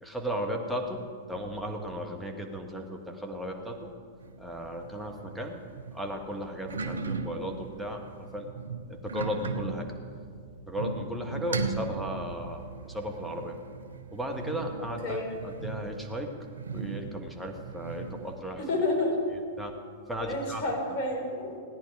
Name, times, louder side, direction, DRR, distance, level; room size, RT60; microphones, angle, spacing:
voice 1, 0.0-3.9 4.4-5.6 5.9-8.5 8.9-9.9 10.7-13.6 14.1-16.3 16.7-18.6 19.6-19.7 20.1-20.7, equal, ahead, 0 dB, 1.7 m, -35 dB
sound 1, 4.2-18.4, right 4 dB, 80° right, 0.8 m, -38 dB
voice 2, 18.7-19.2 20.2-21.6, left 2 dB, 40° left, -1 dB, 4.0 m, -29 dB
16.5 x 10.0 x 4.9 m, 2.1 s
figure-of-eight pair, 100°, 0 cm